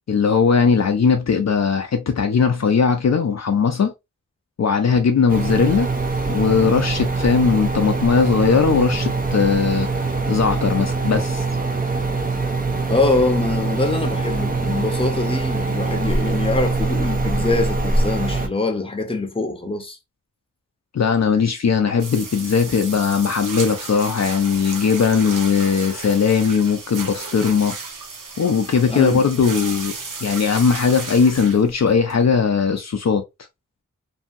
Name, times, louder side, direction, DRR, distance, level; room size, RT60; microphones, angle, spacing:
voice 1, 0.1-3.9 4.6-5.9 6.3-11.5 20.9-27.8 28.4-29.9 30.2-33.2, left 6 dB, 60° left, 0.5 m, -19 dB
sound 1, 5.3-18.5, right 3 dB, 30° right, 0.6 m, -23 dB
voice 2, 12.9-20.0 28.9-29.3, left 2 dB, 15° left, 0.7 m, -23 dB
sound 2, 22.0-32.4, right 4 dB, 85° right, 0.7 m, -34 dB
2.7 x 2.6 x 2.4 m
wide cardioid pair, 70°, 31 cm